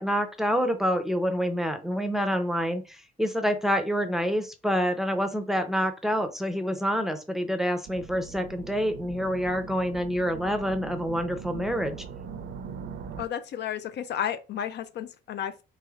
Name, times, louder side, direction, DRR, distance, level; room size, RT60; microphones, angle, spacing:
voice 1, 0.0-12.0, equal, ahead, 0.5 m, -27 dB
sound 1, 7.8-13.3, right 6 dB, 60° right, 0.5 m, -41 dB
voice 2, 13.2-15.6, left 9 dB, 60° left, 0.4 m, -32 dB
3.1 x 3.0 x 2.4 m
cardioid pair, 90°, 20 cm